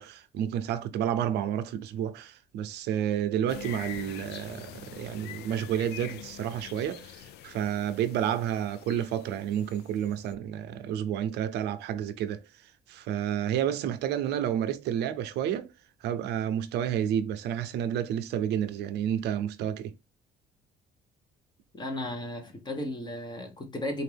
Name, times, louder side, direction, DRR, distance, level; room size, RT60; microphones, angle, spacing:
voice 1, 0.0-12.4 12.9-15.7 16.0-19.9, right 10 dB, 80° right, 0.6 m, -30 dB
sound 1, 3.5-10.4, left 11 dB, 75° left, 0.5 m, -45 dB
voice 2, 21.7-24.0, left 1 dB, 25° left, 1.2 m, -35 dB
4.2 x 2.5 x 3.4 m
cardioid pair, 110°, 17 cm